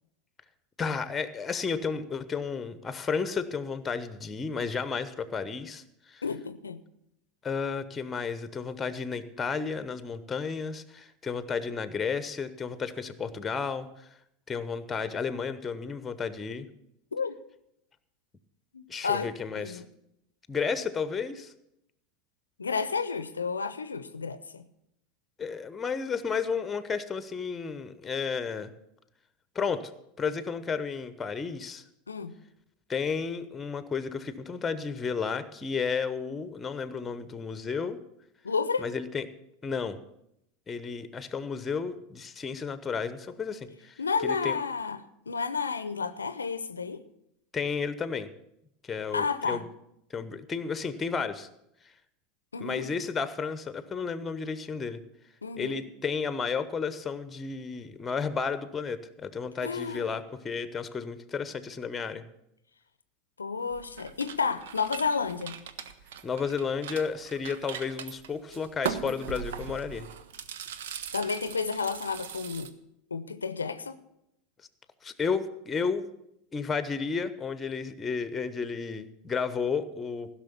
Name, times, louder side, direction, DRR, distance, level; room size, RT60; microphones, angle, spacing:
voice 1, 0.8-5.8 6.1-6.2 7.4-14.1 14.5-16.7 18.9-19.8 20.5-21.5 25.4-28.7 29.5-29.9 30.2-31.8 32.9-38.0 38.8-39.2 39.6-40.0 40.7-44.6 47.5-48.3 48.8-49.7 50.1-51.5 52.6-55.0 55.6-62.2 66.2-70.1 75.0-76.1 76.5-80.3, left 5 dB, 20° left, 1.0 m, -32 dB
voice 2, 6.2-6.8 17.1-17.4 18.7-19.9 22.6-24.6 32.1-32.4 38.4-38.9 44.0-45.0 45.3-47.0 49.1-49.7 52.5-52.9 55.4-55.8 59.6-60.1 63.4-65.6 71.1-72.7 73.1-74.0, left 5 dB, 85° left, 0.6 m, -31 dB
sound 1, 63.7-72.7, right 8 dB, 70° right, 0.8 m, -40 dB
15.5 x 6.3 x 7.0 m
hypercardioid pair, 85°, 0 cm